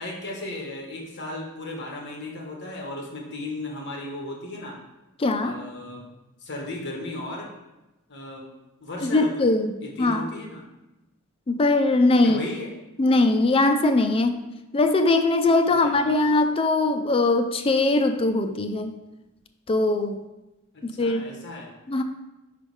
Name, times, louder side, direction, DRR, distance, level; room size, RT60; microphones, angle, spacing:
voice 1, 0.0-4.8 5.4-6.1 6.4-7.5 8.1-8.5 8.8-9.4 9.8-10.6 12.2-12.7 15.6-16.2 20.7-21.7, left 2 dB, 55° left, -1 dB, 1.3 m, -35 dB
voice 2, 5.2-5.6 9.0-10.3 11.5-12.4 13.0-14.4 14.7-18.9 19.7-20.2 20.8-21.3 21.9-22.0, left 2 dB, 25° left, 7 dB, 0.4 m, -21 dB
5.2 x 5.0 x 4.7 m, 1.0 s
head